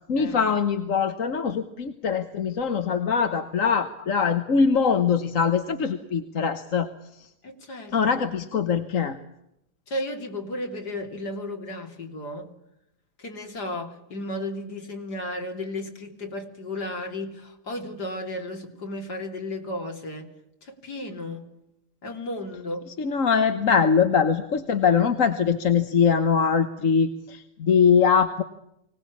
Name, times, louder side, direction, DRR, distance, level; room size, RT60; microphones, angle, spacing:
voice 1, 0.1-7.3 7.9-9.2 23.0-28.4, left 6 dB, 55° left, 9 dB, 1.5 m, -22 dB
voice 2, 7.4-8.0 9.9-12.5 13.2-20.3 20.6-21.4 22.0-22.9, left 1 dB, 80° left, 3 dB, 3.8 m, -34 dB
24.5 x 18.5 x 8.5 m, 0.83 s
omnidirectional pair, 1.7 m